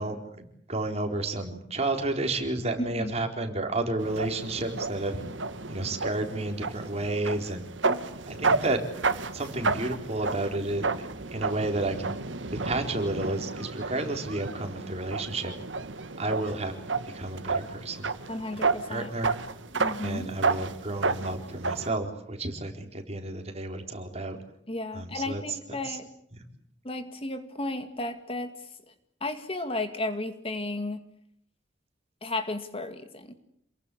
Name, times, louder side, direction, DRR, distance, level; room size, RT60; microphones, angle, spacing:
voice 1, 0.0-5.2 5.7-7.7 8.3-8.8 9.3-10.9 11.3-12.2 12.6-15.5 16.2-16.7 17.1-18.1 18.9-19.4 20.0-24.4 24.9-25.4 25.8-26.0, right 2 dB, 35° right, 4 dB, 4.1 m, -31 dB
sound 1, 4.0-21.9, right 4 dB, 85° right, 1.6 m, -32 dB
voice 2, 18.3-19.1 19.7-20.3 24.7-26.1 26.8-28.6 29.2-31.0 32.2-33.3, left 2 dB, 30° left, 9 dB, 2.0 m, -34 dB
28.0 x 22.5 x 8.5 m, 0.72 s
head